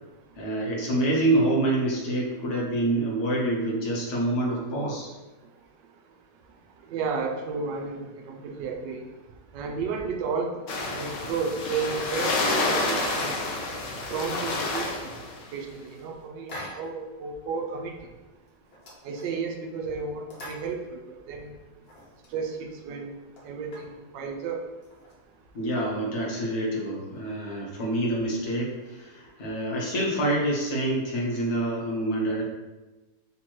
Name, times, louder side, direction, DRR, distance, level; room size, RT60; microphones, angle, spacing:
voice 1, 0.4-5.1 25.5-32.4, right 1 dB, 60° left, -3 dB, 1.4 m, -26 dB
voice 2, 6.9-9.1 9.5-10.6 10.9-13.5 14.1-14.9 15.5-18.0 19.0-21.5 22.3-23.1 23.4-24.6, right 5 dB, 80° right, 4 dB, 1.3 m, -32 dB
sound 1, 10.7-15.4, left 2 dB, 80° left, 1.4 m, -29 dB
sound 2, 16.5-17.1 17.4-17.5 17.9-18.2 18.5-19.6 20.1-21.3 21.6-22.4 22.8-22.9 23.2-24.0 24.7-25.5, left 1 dB, 45° left, 0.9 m, -44 dB
3.8 x 3.0 x 4.3 m, 1.1 s
omnidirectional pair, 1.9 m